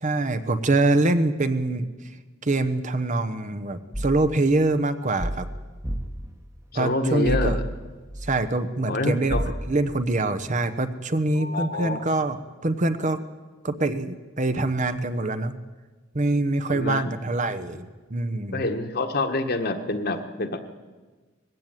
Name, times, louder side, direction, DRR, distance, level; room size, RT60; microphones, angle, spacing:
voice 1, 0.0-1.9 2.4-5.5 6.7-7.6 8.2-9.4 9.7-12.4 12.6-13.2 13.6-15.6 16.1-18.6, right 2 dB, 40° right, 11 dB, 1.0 m, -24 dB
sound 1, 3.9-4.3 5.2-6.3 7.2-8.4 9.3-9.7, equal, 15° right, 1.2 m, -29 dB
voice 2, 6.7-7.6 8.9-9.4 11.3-12.1 16.7-17.2 18.5-20.6, left 2 dB, 50° left, 6 dB, 1.6 m, -27 dB
20.5 x 15.5 x 9.2 m, 1.3 s
head